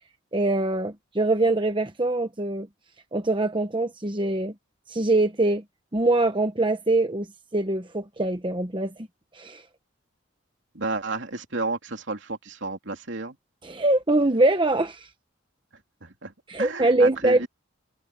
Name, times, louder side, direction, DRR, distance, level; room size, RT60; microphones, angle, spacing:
voice 1, 0.3-2.7 3.1-4.5 4.9-5.6 5.9-7.3 7.5-8.9 9.3-9.6 13.6-15.1 16.5-17.4, right 2 dB, 25° right, 1.1 m, -23 dB
voice 2, 10.7-13.4 16.0-17.5, right 3 dB, 65° right, 3.1 m, -32 dB
head